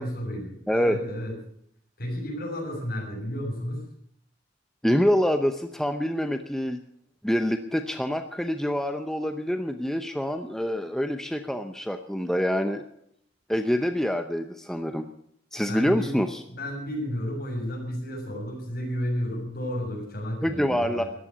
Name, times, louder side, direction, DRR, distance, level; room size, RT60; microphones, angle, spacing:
voice 1, 0.0-1.3 2.0-3.8 15.6-16.2 16.5-21.1, equal, 55° left, 0 dB, 7.1 m, -32 dB
voice 2, 0.7-1.0 4.8-6.8 7.2-12.8 13.5-15.0 15.5-16.4 20.4-21.0, equal, 5° left, 7 dB, 0.7 m, -26 dB
14.0 x 11.5 x 8.7 m, 0.70 s
head